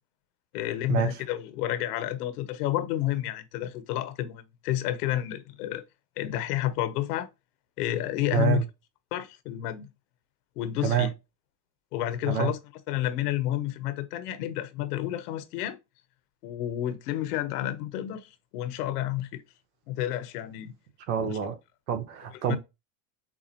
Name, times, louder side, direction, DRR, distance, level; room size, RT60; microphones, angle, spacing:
voice 1, 0.5-5.8 6.2-7.3 7.8-8.6 9.1-9.9 10.6-11.1 11.9-12.6 12.9-15.8 16.4-19.4 19.9-20.7 21.2-21.3 22.5-22.6, left 13 dB, 85° left, 0.9 m, -30 dB
voice 2, 8.3-8.6 10.8-11.1 12.3-12.5 21.1-21.6 21.9-22.6, right 9 dB, 80° right, 1.3 m, -26 dB
7.0 x 2.4 x 2.9 m
supercardioid pair, 105°, 45 cm